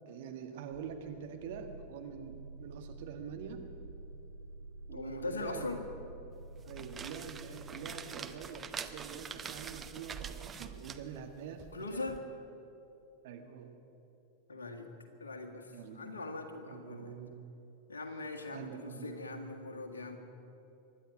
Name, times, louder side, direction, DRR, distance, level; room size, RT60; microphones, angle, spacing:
voice 1, 0.1-3.6 4.9-5.7 6.6-12.1 13.2-13.7 15.7-16.4 16.6-17.3 18.5-19.2, right 7 dB, 55° right, 4 dB, 1.7 m, -45 dB
sound 1, 0.7-8.9, right 3 dB, 85° right, 1.3 m, -50 dB
voice 2, 4.9-5.9 11.7-12.2 14.5-14.9 15.2-17.1 17.9-20.2, left 3 dB, 75° left, 5 dB, 1.7 m, -41 dB
sound 2, 6.5-12.2, right 7 dB, 20° right, 0.8 m, -45 dB
24.0 x 11.5 x 5.2 m, 2.9 s
figure-of-eight pair, 90°, 0 cm